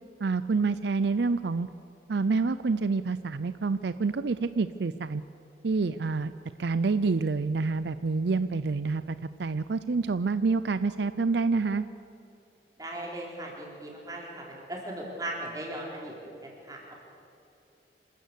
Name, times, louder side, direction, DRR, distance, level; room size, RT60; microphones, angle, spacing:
voice 1, 0.2-1.7 2.1-5.2 5.6-6.3 6.6-11.8, right 4 dB, 70° right, 13 dB, 0.5 m, -27 dB
voice 2, 12.8-16.9, right 1 dB, 20° right, -2 dB, 4.1 m, -38 dB
27.5 x 13.5 x 8.2 m, 2.8 s
head